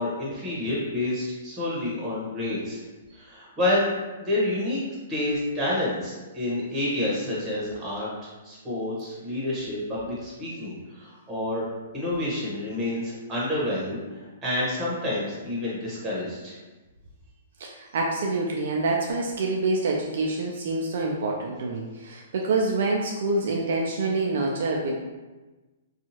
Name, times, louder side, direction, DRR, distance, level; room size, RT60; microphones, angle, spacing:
voice 1, 0.0-2.8 3.1-3.9 4.2-4.8 5.1-8.1 8.4-11.7 11.9-16.5, left 1 dB, 20° right, -6 dB, 1.1 m, -28 dB
voice 2, 17.6-24.9, right 3 dB, 65° right, -1 dB, 0.3 m, -26 dB
2.7 x 2.3 x 2.8 m, 1.2 s
hypercardioid pair, 130°, 0 cm